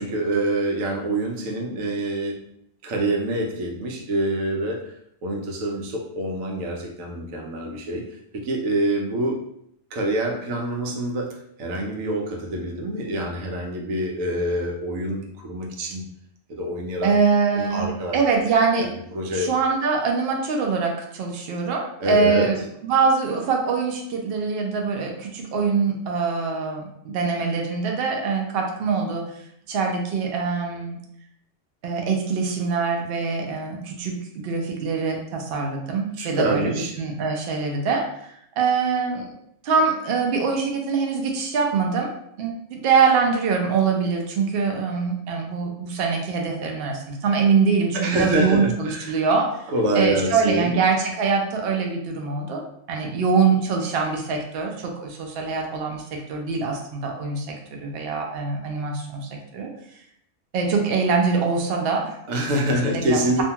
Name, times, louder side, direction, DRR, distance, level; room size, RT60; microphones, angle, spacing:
voice 1, 0.0-2.4 2.8-4.9 5.2-8.1 8.3-9.4 9.9-16.0 16.5-17.1 17.5-19.5 22.0-22.5 36.2-36.9 47.9-49.2 49.7-50.9 62.3-63.4, right 1 dB, 85° right, 0 dB, 1.0 m, -26 dB
voice 2, 17.0-17.9 18.1-18.9 19.3-29.2 29.7-31.0 31.8-38.3 38.6-39.3 39.6-42.1 42.4-49.6 49.9-52.6 52.9-59.7 60.5-62.2 62.9-63.4, right 5 dB, 60° right, 1 dB, 0.7 m, -23 dB
2.6 x 2.2 x 2.8 m, 0.72 s
omnidirectional pair, 1.3 m